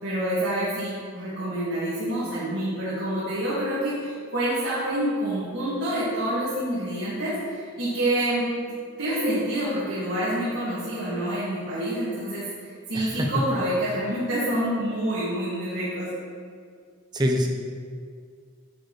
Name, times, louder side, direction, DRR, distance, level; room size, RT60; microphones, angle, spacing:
voice 1, 0.0-12.4 12.9-16.1, right 1 dB, 55° right, -11 dB, 2.1 m, -27 dB
voice 2, 12.9-13.4 17.1-17.5, equal, 20° right, 1 dB, 0.7 m, -24 dB
9.8 x 6.5 x 3.2 m, 2.1 s
head